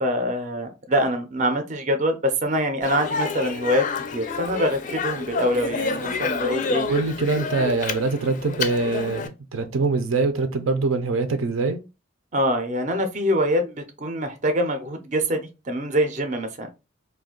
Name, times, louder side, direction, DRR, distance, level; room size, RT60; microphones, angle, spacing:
voice 1, 0.0-3.8 4.1-6.9 12.3-16.7, equal, 40° right, 0.5 m, -24 dB
Speech, 2.8-9.3, left 4 dB, 40° left, 0.4 m, -29 dB
voice 2, 6.9-11.8, right 3 dB, 90° right, 0.5 m, -24 dB
2.4 x 2.2 x 3.6 m
head